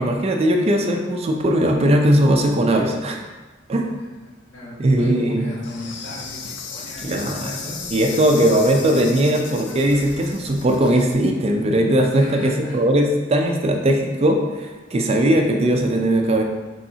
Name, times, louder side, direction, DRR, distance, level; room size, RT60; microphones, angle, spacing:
voice 1, 0.0-3.2 3.7-3.9 4.8-5.5 7.0-7.6 7.9-16.4, right 1 dB, 30° right, 3 dB, 0.4 m, -19 dB
voice 2, 4.0-7.8 12.2-12.8, left 1 dB, 80° left, -7 dB, 1.5 m, -35 dB
Insect, 5.6-11.1, left 5 dB, 65° left, 0.5 m, -35 dB
5.4 x 3.2 x 2.7 m, 1.2 s
head